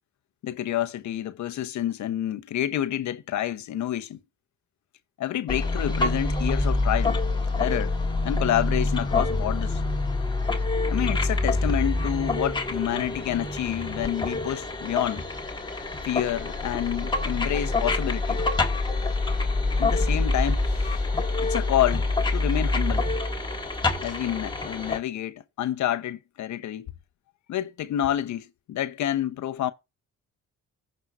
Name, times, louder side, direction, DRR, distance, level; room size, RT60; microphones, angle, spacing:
voice 1, 0.4-4.2 5.2-7.2 7.6-8.0 8.2-9.8 10.9-15.2 16.0-18.4 19.8-21.0 21.4-23.1 24.0-26.9 27.5-29.7, left 12 dB, 70° left, 0.9 m, -28 dB
sound 1, 5.5-25.0, left 2 dB, 15° left, 1.5 m, -26 dB
15.5 x 5.5 x 2.5 m
cardioid pair, 90°, 30 cm